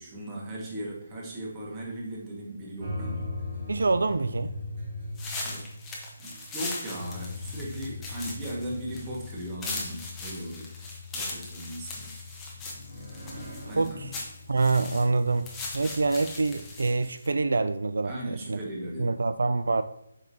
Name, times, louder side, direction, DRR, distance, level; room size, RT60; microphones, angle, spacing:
voice 1, 0.0-3.3 5.4-5.7 6.2-10.7 11.1-12.2 12.9-13.0 13.7-14.1 18.0-19.2, right 1 dB, 20° right, 1.6 m, -38 dB
sound 1, 2.8-17.0, left 2 dB, 40° right, 2.1 m, -41 dB
voice 2, 3.7-4.5 13.8-13.9 14.5-18.6 19.0-19.8, right 3 dB, 80° right, 0.3 m, -26 dB
sound 2, 5.1-17.3, left 2 dB, 10° left, 1.0 m, -39 dB
7.8 x 5.3 x 2.8 m
hypercardioid pair, 165°, 0 cm